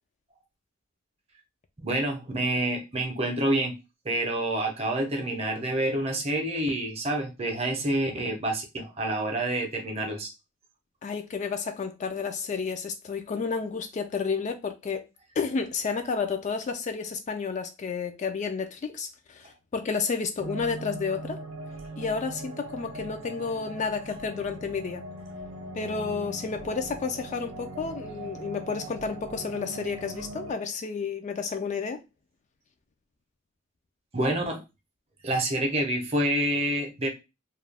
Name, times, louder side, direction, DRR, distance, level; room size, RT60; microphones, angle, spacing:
voice 1, 1.8-3.7 4.0-10.3 34.1-34.6 35.2-37.1, right 1 dB, 30° right, 0.7 m, -28 dB
voice 2, 11.0-15.0 15.4-21.4 22.0-25.0 25.7-32.0, left 5 dB, 35° left, 0.3 m, -31 dB
sound 1, 20.4-30.5, right 1 dB, 75° right, 0.5 m, -40 dB
2.4 x 2.2 x 3.2 m
head